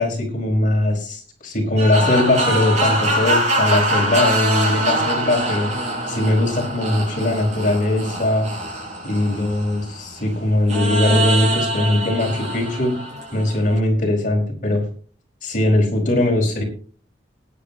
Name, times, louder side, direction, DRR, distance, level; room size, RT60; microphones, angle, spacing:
voice 1, 0.0-5.7 6.1-8.5 9.0-12.9 13.3-14.8 15.4-16.6, left 1 dB, 50° left, -1 dB, 5.0 m, -20 dB
sound 1, 1.8-10.0 10.7-13.8, right 1 dB, 40° right, 6.5 m, -23 dB
19.5 x 10.5 x 2.9 m, 0.43 s
head